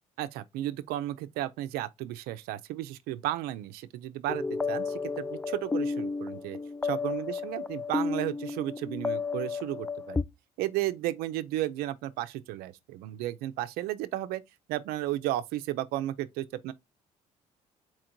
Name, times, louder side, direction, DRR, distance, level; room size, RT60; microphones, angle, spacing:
voice 1, 0.2-6.6 6.8-10.2 10.6-14.4 14.7-16.7, right 14 dB, 80° right, 0.5 m, -33 dB
sound 1, 4.3-10.2, left 4 dB, 10° left, 0.3 m, -32 dB
4.4 x 2.5 x 4.4 m
supercardioid pair, 75°, 16 cm